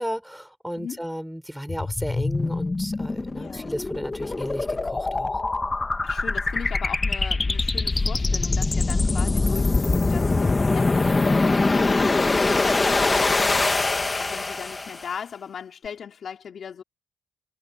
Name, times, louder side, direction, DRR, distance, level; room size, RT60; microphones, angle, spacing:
voice 1, 0.0-5.4 11.3-11.7, equal, ahead, 5.4 m, -34 dB
sound 1, 1.7-15.1, left 3 dB, 25° left, 1.9 m, -23 dB
voice 2, 3.3-3.8 6.0-16.8, left 7 dB, 55° left, 3.7 m, -38 dB
cardioid pair, 90°, 0 cm